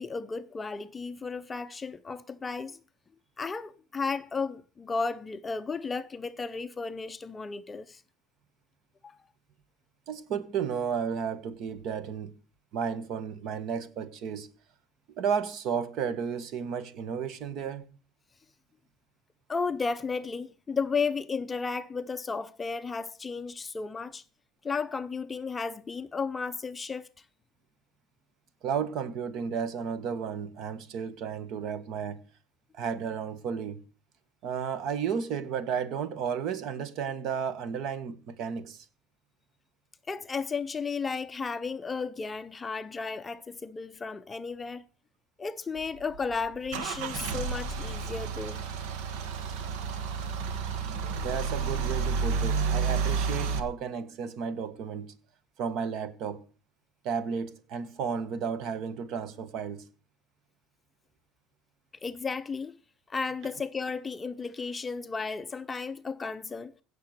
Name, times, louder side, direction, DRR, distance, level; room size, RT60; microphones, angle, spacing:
voice 1, 0.0-2.8 3.4-8.0 9.0-9.2 19.5-24.2 24.6-27.1 40.1-44.9 45.4-48.6 62.0-62.7 63.1-66.7, left 4 dB, 15° left, 0.6 m, -34 dB
voice 2, 10.1-12.3 12.7-14.5 15.1-17.8 28.6-32.2 32.7-33.8 34.4-38.8 51.2-55.1 55.6-56.4 57.0-59.9, right 7 dB, 45° right, 1.5 m, -33 dB
Car / Engine starting / Idling, 45.8-53.6, right 5 dB, 70° right, 1.8 m, -31 dB
16.5 x 6.7 x 6.6 m
cardioid pair, 160°, 0 cm